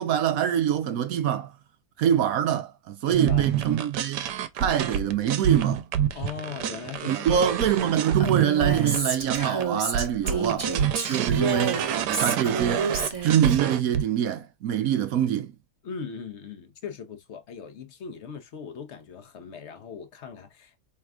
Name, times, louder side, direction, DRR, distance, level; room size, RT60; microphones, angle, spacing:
voice 1, 0.0-1.5 2.0-4.3 4.5-5.9 7.1-10.7 11.1-11.8 12.2-12.9 13.2-15.5, right 9 dB, 65° right, 1.0 m, -25 dB
voice 2, 3.0-3.6 6.1-7.5 10.2-10.7 15.8-20.8, left 6 dB, 50° left, 1.0 m, -39 dB
sound 1, 3.1-9.6 9.9-14.0, right 9 dB, 85° right, 1.2 m, -27 dB
Female speech woman speaking, 8.2-13.6, right 4 dB, 25° right, 0.9 m, -29 dB
4.6 x 3.4 x 2.3 m
omnidirectional pair, 1.8 m